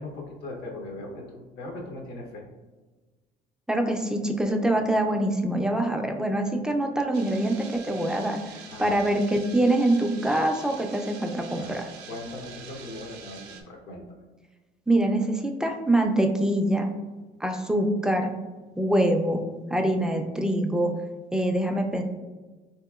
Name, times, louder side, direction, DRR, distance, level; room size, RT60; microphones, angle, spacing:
voice 1, 0.0-2.4 8.7-9.0 11.6-11.8 12.1-14.2, left 2 dB, 75° left, 0 dB, 0.8 m, -39 dB
voice 2, 3.7-11.9 14.9-16.9 17.4-18.3 18.8-19.4 19.7-20.9 21.3-22.0, right 1 dB, 5° right, 3 dB, 0.3 m, -24 dB
sound 1, 7.1-13.6, right 6 dB, 90° right, 0.5 m, -45 dB
3.5 x 2.8 x 2.3 m, 1.3 s
cardioid pair, 110°, 17 cm